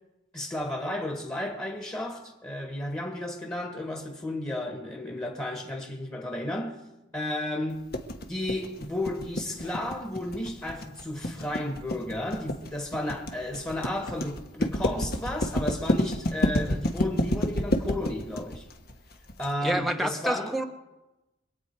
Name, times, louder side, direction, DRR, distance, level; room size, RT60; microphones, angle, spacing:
voice 1, 0.3-6.8 7.1-8.0 8.3-18.7 19.4-20.5, left 1 dB, 15° left, 1.7 m, -33 dB
sound 1, 7.9-19.5, left 1 dB, 50° left, 1.3 m, -29 dB
voice 2, 19.6-20.6, right 1 dB, ahead, 0.9 m, -28 dB
25.0 x 8.6 x 4.7 m
head